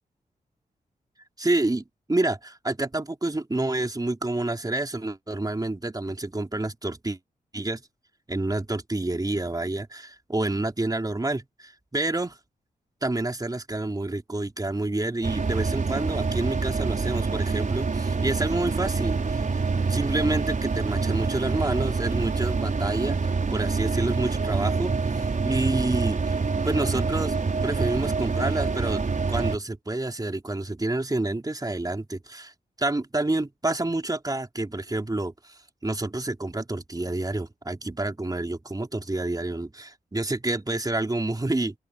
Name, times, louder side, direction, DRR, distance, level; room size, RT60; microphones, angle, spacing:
voice 1, 1.4-7.2 7.5-7.8 8.3-12.4 13.0-26.4 26.6-32.5 32.8-41.8, right 2 dB, 25° right, 3.5 m, -28 dB
sound 1, 15.2-29.6, right 4 dB, 55° right, 5.6 m, -26 dB
open air
cardioid pair, 55°, 16 cm